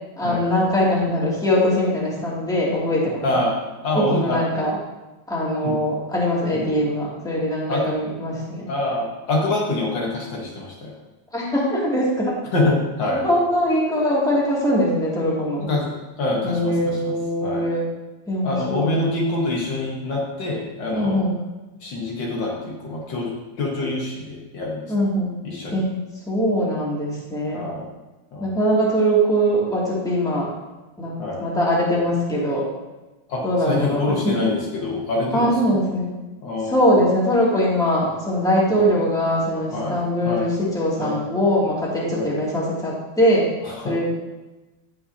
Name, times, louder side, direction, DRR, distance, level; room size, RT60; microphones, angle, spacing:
voice 1, 0.2-3.3 3.9-4.8 5.3-8.7 11.3-12.4 13.1-15.7 16.4-17.8 18.3-19.0 20.9-21.3 24.9-25.3 25.7-26.0 26.3-27.6 28.4-30.5 31.0-31.1 31.4-32.6 33.4-34.0 35.3-36.1 36.7-43.5 43.8-44.1, equal, ahead, -6 dB, 2.2 m, -21 dB
voice 2, 3.2-3.5 3.8-4.4 5.6-5.8 6.5-6.7 7.7-7.8 8.7-10.9 12.5-13.2 15.7-17.1 17.4-17.7 18.4-21.2 21.8-23.3 23.6-24.8 25.4-25.8 27.5-27.9 28.3-28.5 31.2-31.4 33.3-35.8 36.4-37.0 38.7-38.9 39.7-40.0 40.2-40.5 41.0-41.2 42.1-42.3 43.6-44.1, left 2 dB, 65° left, -2 dB, 2.0 m, -25 dB
16.0 x 5.6 x 2.8 m, 1.1 s
omnidirectional pair, 2.2 m